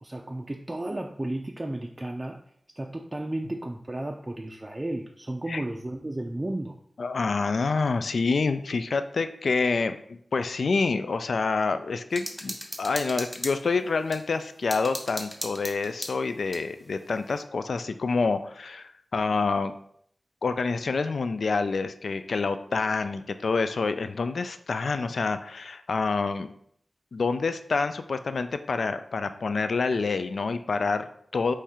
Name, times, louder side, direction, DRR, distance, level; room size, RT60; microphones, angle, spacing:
voice 1, 0.0-2.4 2.8-6.8, right 1 dB, 25° right, 2 dB, 0.4 m, -33 dB
voice 2, 7.0-19.7 20.4-26.5 27.1-31.5, left 4 dB, 80° left, 10 dB, 0.3 m, -27 dB
sound 1, 12.1-14.2 14.7-16.7, equal, 5° left, 0.8 m, -37 dB
4.3 x 3.1 x 3.6 m, 0.66 s
wide cardioid pair, 65°, 0 cm